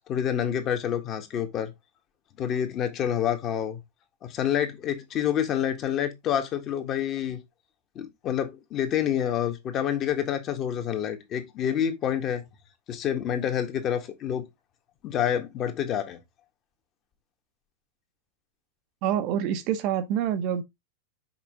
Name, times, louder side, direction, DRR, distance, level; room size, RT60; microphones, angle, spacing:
voice 1, 0.0-1.7 2.4-3.8 4.2-7.4 7.9-12.4 12.9-14.4 15.0-16.2, left 9 dB, 35° left, 1.6 m, -28 dB
voice 2, 19.0-20.6, right 9 dB, 45° right, 0.9 m, -26 dB
6.1 x 5.2 x 3.8 m
figure-of-eight pair, 90°, 0 cm